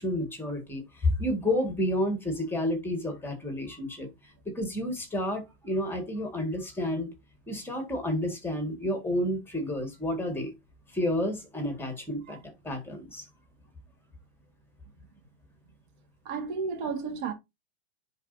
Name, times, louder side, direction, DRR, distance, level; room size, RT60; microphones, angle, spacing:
voice 1, 0.0-7.1 7.5-10.5 10.9-12.4 12.6-13.3, left 1 dB, 5° left, 1.8 m, -30 dB
voice 2, 16.3-17.3, right 5 dB, 50° right, 1.9 m, -32 dB
9.9 x 4.1 x 2.7 m
hypercardioid pair, 135°, 33 cm